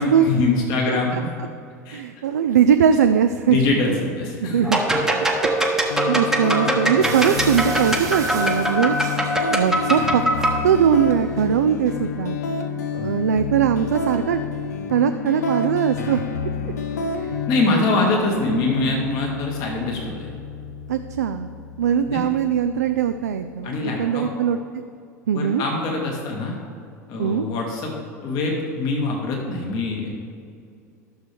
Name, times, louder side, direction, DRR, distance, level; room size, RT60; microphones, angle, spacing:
voice 1, 0.0-1.3 1.9-2.0 3.5-4.6 4.9-5.0 6.6-6.7 17.5-20.3 22.1-22.2 23.6-24.3 25.3-26.6 27.1-30.1, left 3 dB, 50° left, 0 dB, 2.0 m, -24 dB
voice 2, 0.9-1.2 1.9-3.6 4.4-4.8 5.4-5.5 5.9-9.0 9.5-10.2 10.6-12.4 12.9-14.4 14.9-16.3 16.6-16.7 17.2-17.4 17.7-18.0 20.9-21.5 21.8-24.6 25.3-25.6 27.2-27.5, right 8 dB, 70° right, 8 dB, 0.4 m, -21 dB
sound 1, 4.6-10.6, right 1 dB, 5° right, 1.1 m, -22 dB
sound 2, 5.9-23.9, left 4 dB, 70° left, 0.7 m, -30 dB
sound 3, 7.0-9.9 10.2-10.7 11.4-11.5 11.9-12.0, right 6 dB, 40° right, 1.1 m, -35 dB
12.5 x 6.7 x 3.4 m, 2.4 s
figure-of-eight pair, 75°, 9 cm